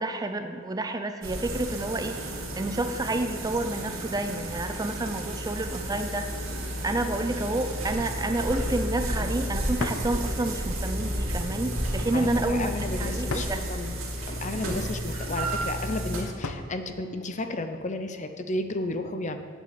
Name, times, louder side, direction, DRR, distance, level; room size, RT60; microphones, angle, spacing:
voice 1, 0.0-6.3 6.8-13.6, right 2 dB, 20° right, 7 dB, 0.4 m, -29 dB
sound 1, 1.2-16.2, right 1 dB, 80° right, 2.2 m, -32 dB
sound 2, 8.4-8.8 9.8-10.1 11.7-12.1 13.3-13.7 15.1-15.5 16.4-16.8, left 3 dB, 85° left, 0.8 m, -36 dB
voice 2, 12.1-14.0 14.3-19.4, left 2 dB, 35° left, 8 dB, 0.7 m, -33 dB
8.5 x 7.4 x 7.6 m, 2.2 s
head